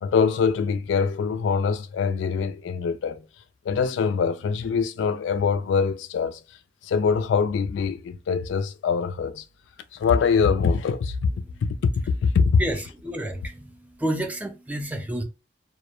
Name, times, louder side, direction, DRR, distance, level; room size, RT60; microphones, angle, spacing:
voice 1, 0.0-3.3 3.7-6.4 6.8-9.4 9.9-11.3 11.6-12.6, left 5 dB, 80° left, 0.3 m, -23 dB
voice 2, 12.6-15.2, right 1 dB, 10° right, 0.3 m, -30 dB
2.2 x 2.0 x 2.9 m
head